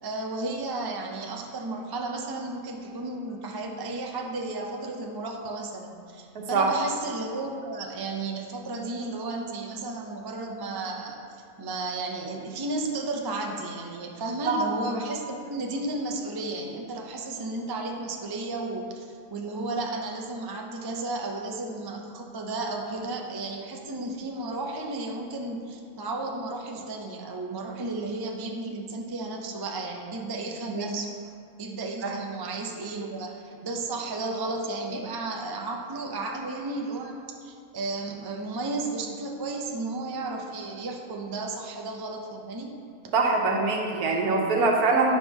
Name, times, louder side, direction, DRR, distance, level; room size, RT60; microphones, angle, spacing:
voice 1, 0.0-11.2 11.6-31.1 31.6-42.8, right 2 dB, 35° right, 1 dB, 0.3 m, -33 dB
voice 2, 43.1-45.1, right 3 dB, 75° right, 0 dB, 1.4 m, -23 dB
10.0 x 5.0 x 3.6 m, 2.3 s
omnidirectional pair, 1.6 m